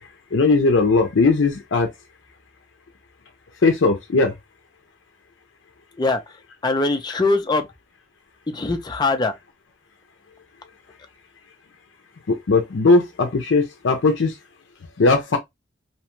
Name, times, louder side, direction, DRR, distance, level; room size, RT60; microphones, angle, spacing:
voice 1, 0.3-1.9 3.6-4.3 12.3-14.3 15.0-15.4, left 3 dB, 75° left, 0.5 m, -18 dB
voice 2, 6.6-7.7 8.5-9.3, left 3 dB, 20° left, 0.4 m, -21 dB
2.9 x 2.2 x 2.9 m
head